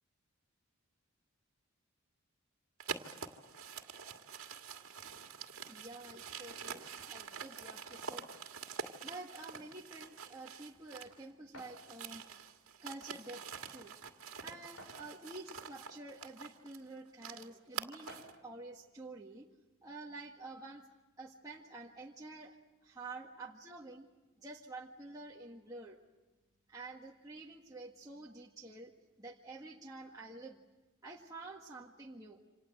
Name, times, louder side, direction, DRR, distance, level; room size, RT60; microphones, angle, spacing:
sound 1, 2.8-11.2 11.5-18.4, right 6 dB, 70° right, 2.0 m, -46 dB
voice 1, 5.7-8.3 9.0-13.9 14.4-19.5 19.8-20.9 21.2-24.1 24.4-26.0 26.7-28.9 29.2-30.6 31.0-32.4, right 2 dB, 15° right, -3 dB, 1.6 m, -49 dB
sound 2, 11.5-11.8 13.0-13.1 13.5-13.6 14.8-15.4 16.3-16.4 18.1-18.5, equal, 80° left, 7.5 m, -53 dB
28.5 x 26.5 x 7.8 m, 1.1 s
head